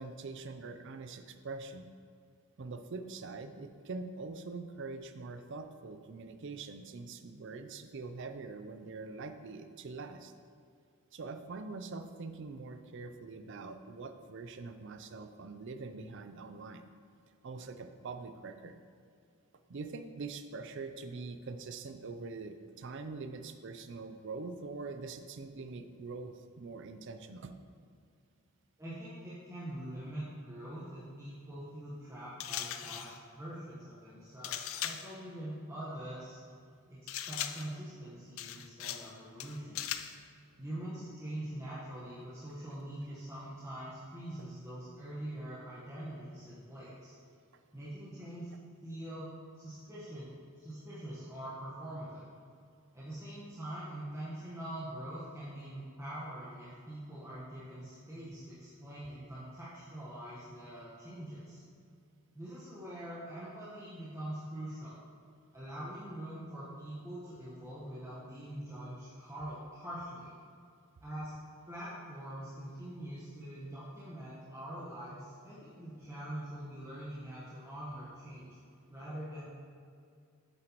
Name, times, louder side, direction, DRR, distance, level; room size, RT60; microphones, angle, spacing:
voice 1, 0.0-1.9 2.6-10.3 11.1-16.8 17.4-18.8 19.7-27.6 38.8-39.0, right 3 dB, 55° right, 8 dB, 0.5 m, -44 dB
voice 2, 28.8-36.4 36.9-39.9 40.6-47.1 47.7-49.3 49.6-52.2 52.9-61.6 62.3-65.0 65.5-70.3 71.0-71.3 71.7-78.6 78.9-79.4, right 1 dB, 15° right, -10 dB, 1.2 m, -44 dB
sound 1, 32.4-33.2 34.4-35.1 37.1-37.8 38.4-39.1 39.4-40.2, left 11 dB, 65° left, 0.4 m, -39 dB
7.8 x 7.7 x 3.0 m, 2.3 s
head